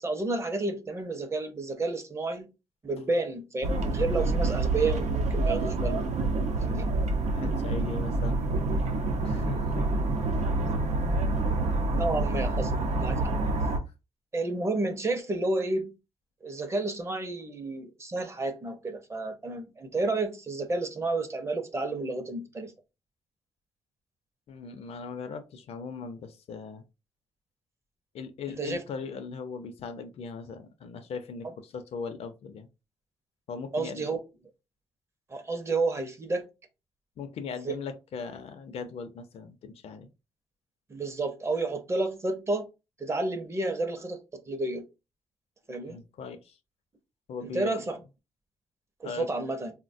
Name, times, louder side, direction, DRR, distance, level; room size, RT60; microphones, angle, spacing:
voice 1, 0.0-2.5 2.8-6.1 6.6-6.9 11.9-13.3 14.3-15.9 16.4-22.7 28.5-28.8 33.7-34.2 35.3-36.5 37.6-37.8 40.9-42.6 43.0-44.2 44.5-44.8 45.7-46.0 47.4-48.0 49.0-49.7, right 2 dB, 25° right, 0.5 m, -31 dB
sound 1, 3.6-13.8, right 2 dB, 90° right, 0.6 m, -27 dB
voice 2, 7.3-8.4 9.2-9.9 10.2-10.5 24.5-26.8 28.1-32.7 33.5-34.1 37.2-40.1 45.9-46.6 47.3-47.8 49.0-49.3, left 5 dB, 65° left, 0.5 m, -39 dB
4.0 x 2.1 x 2.5 m
wide cardioid pair, 160°, 11 cm